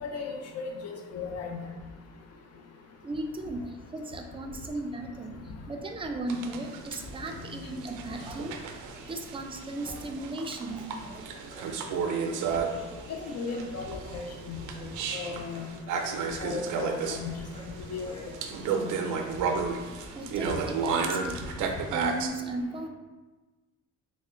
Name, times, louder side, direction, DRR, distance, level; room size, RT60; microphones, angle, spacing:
voice 1, 0.0-1.6 13.1-15.7 16.4-17.3 17.9-18.1 18.8-18.9, left 4 dB, 55° left, 2 dB, 0.6 m, -36 dB
voice 2, 3.0-8.6 9.1-11.9 20.1-21.5 21.9-22.9, right 2 dB, 20° right, 4 dB, 0.4 m, -36 dB
sound 1, 6.3-22.3, right 5 dB, 85° right, 0.4 m, -33 dB
Human voice, 11.0-19.0, left 2 dB, 15° left, 0.7 m, -50 dB
3.5 x 2.1 x 3.7 m, 1.2 s
cardioid pair, 90°, 30 cm